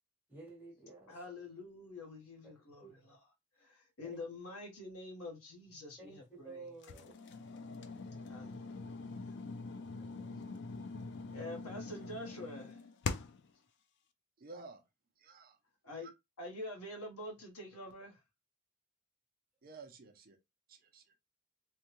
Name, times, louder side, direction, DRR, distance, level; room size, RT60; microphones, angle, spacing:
voice 1, 0.3-1.3 2.8-2.9 4.0-4.2 6.0-7.2 10.0-10.5, right 3 dB, 10° right, 1.3 m, -52 dB
voice 2, 1.1-3.2 3.6-6.7 8.3-9.2 11.3-12.8 15.8-16.1 16.4-18.2, left 1 dB, 80° left, 1.1 m, -47 dB
sound 1, 6.8-13.5, left 4 dB, 50° left, 0.4 m, -43 dB
voice 3, 14.4-14.8 15.2-15.6 16.0-16.1 19.6-20.4 20.7-21.1, right 3 dB, 40° right, 0.5 m, -53 dB
3.4 x 2.2 x 3.0 m
head